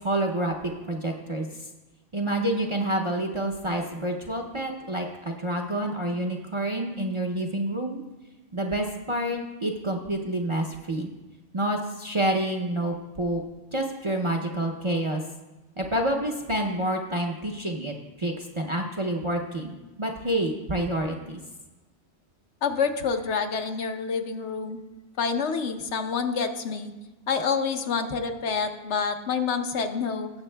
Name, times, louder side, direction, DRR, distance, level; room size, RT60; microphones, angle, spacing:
voice 1, 0.0-1.5 2.1-8.0 8.5-11.1 11.5-13.4 13.7-15.2 15.8-21.4, right 1 dB, 35° right, 1 dB, 0.5 m, -28 dB
voice 2, 22.6-24.8 25.2-26.9 27.3-30.3, left 5 dB, 75° left, 6 dB, 1.0 m, -27 dB
18.5 x 7.0 x 2.2 m, 1.1 s
omnidirectional pair, 1.2 m